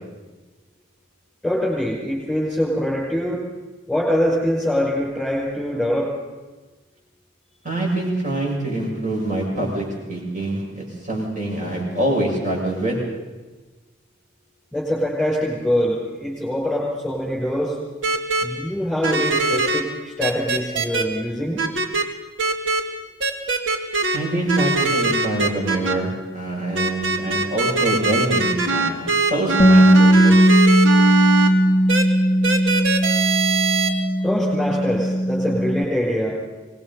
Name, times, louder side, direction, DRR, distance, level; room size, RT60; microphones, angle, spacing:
voice 1, 1.4-3.4 3.9-6.1 14.7-17.8 18.4-21.6 34.2-36.4, equal, ahead, -6 dB, 5.5 m, -24 dB
voice 2, 7.6-13.0 24.1-30.4, right 1 dB, 40° right, -2 dB, 7.1 m, -25 dB
sound 1, 18.0-18.4 19.0-19.8 20.2-21.0 21.6-22.0 22.4-22.8 23.2-24.2 24.5-25.9 26.8-31.5 31.9-32.0 32.4-33.9, right 3 dB, 80° right, 2.0 m, -21 dB
Bass guitar, 29.6-35.8, equal, 25° left, 0.6 m, -17 dB
24.0 x 20.5 x 5.5 m, 1.2 s
head